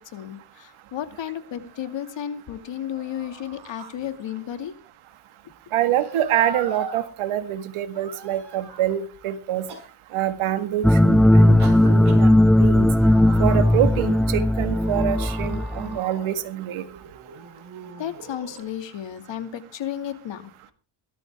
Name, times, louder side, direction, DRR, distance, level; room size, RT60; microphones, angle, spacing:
voice 1, 0.1-4.8 17.8-20.7, left 10 dB, 65° left, 8 dB, 2.4 m, -33 dB
sound 1, 1.1-2.3 2.8-4.4 5.8-7.0 7.9-9.0 9.7-9.9 11.6-12.2 13.0-18.6, right 4 dB, 50° right, 4.8 m, -40 dB
voice 2, 5.7-9.7 10.1-12.3 12.6-12.9 13.4-16.9, right 11 dB, 85° right, 9 dB, 1.9 m, -26 dB
sound 2, 10.8-16.0, left 1 dB, ahead, 0.7 m, -17 dB
17.5 x 13.0 x 3.6 m, 0.34 s
cardioid pair, 95°, 49 cm